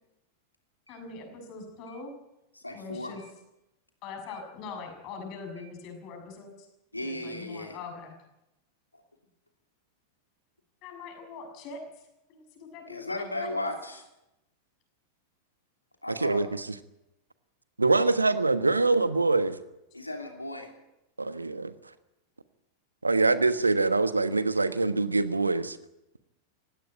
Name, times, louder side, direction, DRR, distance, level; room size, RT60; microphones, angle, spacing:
voice 1, 0.9-2.1 2.7-3.2 4.0-6.7 7.0-8.2 10.8-11.8 12.3-13.5, left 4 dB, 40° left, 5 dB, 6.6 m, -42 dB
voice 2, 2.5-3.2 4.3-4.4 5.6-5.7 6.9-7.8 8.9-9.0 12.9-14.0 16.0-16.4 19.9-20.7, left 1 dB, 85° left, 3 dB, 3.0 m, -36 dB
voice 3, 16.1-16.5 17.8-19.6 21.2-21.7 23.0-25.8, right 3 dB, 80° right, 13 dB, 1.2 m, -24 dB
19.0 x 17.0 x 9.2 m, 0.91 s
figure-of-eight pair, 90°, 0 cm